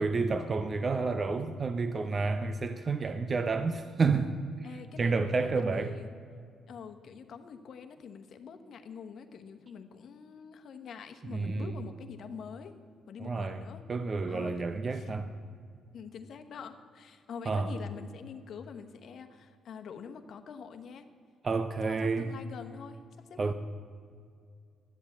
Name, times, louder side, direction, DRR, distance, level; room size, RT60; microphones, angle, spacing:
voice 1, 0.0-4.3 4.6-4.7 5.0-5.9 11.3-11.7 13.2-13.6 13.9-15.3 17.5-17.7 21.4-22.3 23.4-23.5, right 4 dB, 40° right, 9 dB, 0.6 m, -30 dB
voice 2, 4.6-6.1 6.7-12.7 13.1-13.8 14.3-14.6 14.9-15.1 15.9-21.1 21.8-23.5, left 6 dB, 65° left, 7 dB, 1.1 m, -45 dB
12.0 x 8.1 x 8.5 m, 2.3 s
cardioid pair, 90°, 0 cm